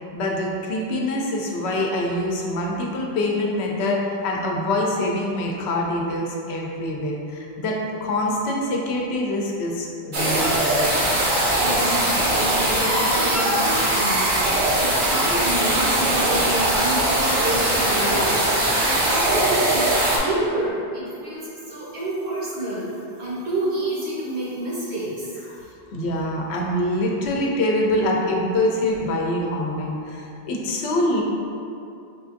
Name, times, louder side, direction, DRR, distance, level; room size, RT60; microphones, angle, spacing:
voice 1, 0.1-10.9 25.5-25.6 25.9-31.2, left 1 dB, 90° left, -1 dB, 0.8 m, -25 dB
sound 1, 10.1-20.2, right 1 dB, 55° right, 0.7 m, -21 dB
voice 2, 11.6-22.9 23.2-25.4, right 1 dB, 80° right, -8 dB, 1.3 m, -28 dB
4.3 x 2.4 x 2.5 m, 2.6 s
omnidirectional pair, 1.1 m